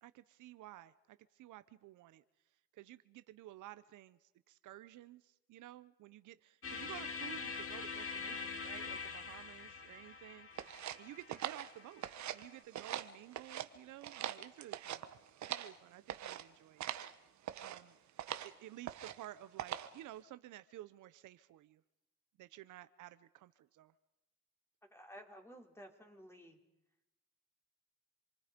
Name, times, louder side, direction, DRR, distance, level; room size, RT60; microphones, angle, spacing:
voice 1, 0.0-2.2 2.7-10.7 11.0-12.0 12.3-15.1 15.5-16.9 17.6-18.0 18.4-21.8 22.4-23.9, right 14 dB, 85° right, 14 dB, 0.9 m, -53 dB
sound 1, 6.6-12.6, left 5 dB, 45° left, 2.5 m, -44 dB
sound 2, 10.6-12.5 12.7-13.7 14.0-15.8 16.1-16.4 16.8-17.1 17.4-17.8 18.2-18.5 18.8-19.3 19.6-20.0, right 11 dB, 70° right, 1.3 m, -42 dB
voice 2, 24.8-26.6, equal, 10° left, 3 dB, 4.1 m, -54 dB
28.0 x 23.5 x 5.3 m, 0.94 s
cardioid pair, 90°, 30 cm